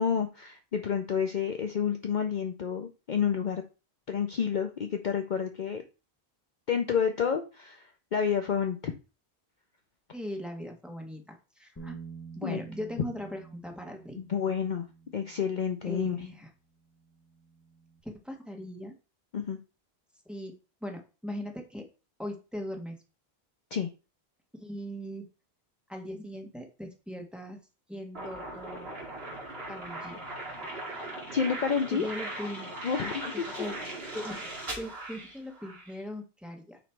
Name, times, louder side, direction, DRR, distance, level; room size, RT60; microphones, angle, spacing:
voice 1, 0.0-3.6 4.1-5.8 6.7-8.9 12.4-12.6 14.2-14.9 15.1-16.2 19.3-19.6 23.7-23.9 31.3-32.1 32.8-33.5, left 7 dB, 50° left, 6 dB, 0.7 m, -29 dB
voice 2, 10.1-12.0 12.4-14.2 15.8-16.5 18.0-18.9 20.3-20.5 20.8-21.8 22.2-22.9 24.6-25.3 25.9-27.6 27.9-28.9 29.7-30.2 31.9-32.7 33.6-34.4 34.7-36.8, equal, ahead, 2 dB, 1.4 m, -39 dB
Bass guitar, 11.8-18.0, right 5 dB, 15° left, 1.0 m, -49 dB
sound 1, 28.1-35.9, right 1 dB, 70° right, 2.5 m, -39 dB
9.1 x 3.1 x 4.5 m, 0.32 s
omnidirectional pair, 1.1 m